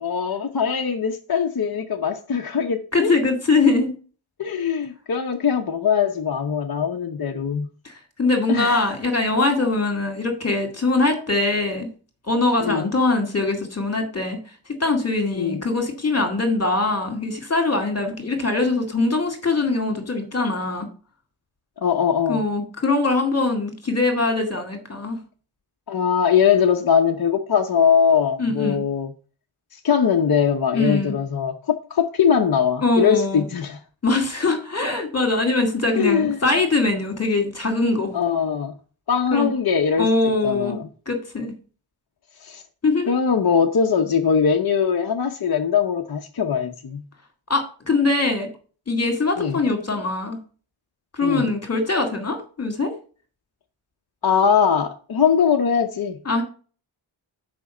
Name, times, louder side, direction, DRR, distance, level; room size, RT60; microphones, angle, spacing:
voice 1, 0.0-3.1 4.4-7.7 8.5-8.8 12.6-12.9 15.4-15.6 21.8-22.4 25.9-29.1 29.7-33.8 35.9-36.4 38.1-38.7 39.1-40.1 40.4-40.9 42.4-42.6 43.1-47.0 49.4-49.6 51.2-51.5 54.2-56.2, left 7 dB, 50° left, 0.8 m, -21 dB
voice 2, 2.9-3.9 7.8-11.9 12.2-14.4 14.8-20.9 22.3-25.2 28.4-28.8 30.7-31.2 32.8-33.4 34.0-38.2 39.3-39.5 40.0-40.8 41.1-41.5 42.8-43.2 47.5-48.5 48.9-50.4 51.1-52.9 56.3-56.4, left 3 dB, 30° left, 2.2 m, -22 dB
6.2 x 5.3 x 6.9 m
wide cardioid pair, 90°, 48 cm